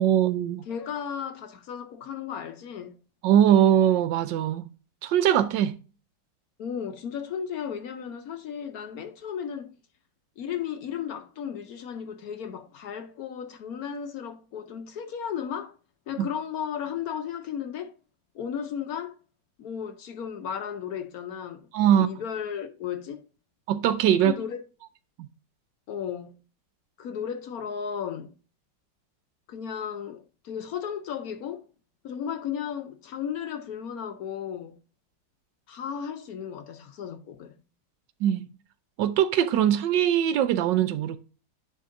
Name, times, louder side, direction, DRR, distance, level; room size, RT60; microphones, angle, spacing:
voice 1, 0.0-0.6 3.2-4.7 5.0-5.7 16.2-16.3 21.7-22.1 23.7-24.4 25.2-25.3 38.2-38.5 39.0-41.2, right 10 dB, 85° right, 1.3 m, -21 dB
voice 2, 0.7-3.0 6.6-9.7 10.4-15.8 16.1-18.0 18.3-19.2 19.6-23.3 24.2-24.6 25.9-26.4 27.0-28.3 29.5-31.7 32.0-34.7 35.7-37.6, left 8 dB, 65° left, 1.0 m, -35 dB
10.0 x 4.6 x 2.6 m
omnidirectional pair, 2.0 m